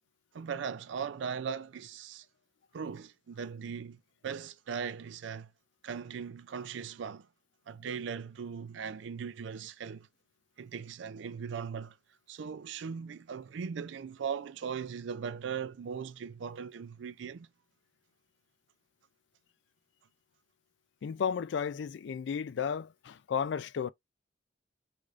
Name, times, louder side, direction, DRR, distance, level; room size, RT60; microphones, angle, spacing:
voice 1, 0.3-2.3 2.7-5.5 5.8-7.3 7.7-10.1 10.6-12.0 12.3-17.5, right 6 dB, 70° right, 0.4 m, -39 dB
voice 2, 21.0-23.9, left 7 dB, 65° left, 0.3 m, -33 dB
4.8 x 2.6 x 2.4 m
head